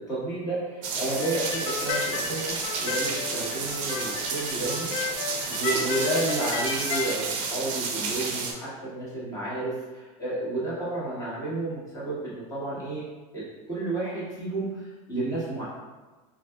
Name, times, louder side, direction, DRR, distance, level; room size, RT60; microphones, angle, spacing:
voice 1, 0.1-13.0 13.3-15.6, right 2 dB, 20° left, -9 dB, 1.3 m, -31 dB
sound 1, 0.8-8.5, right 4 dB, 45° right, 0.5 m, -31 dB
sound 2, 1.2-7.1, left 5 dB, 70° left, 0.5 m, -33 dB
4.0 x 2.5 x 2.3 m, 1.3 s
supercardioid pair, 150°, 17 cm